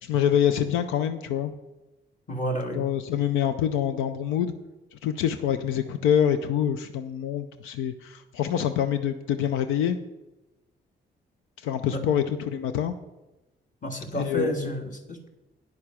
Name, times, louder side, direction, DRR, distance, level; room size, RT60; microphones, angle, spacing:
voice 1, 0.0-1.5 2.7-4.5 4.9-10.0 11.6-12.9 14.2-14.7, left 9 dB, 90° left, 10 dB, 0.5 m, -26 dB
voice 2, 2.3-2.8 11.9-12.0 13.8-15.3, equal, 40° left, 2 dB, 2.0 m, -30 dB
9.6 x 6.6 x 5.8 m, 1.0 s
supercardioid pair, 60°, 20 cm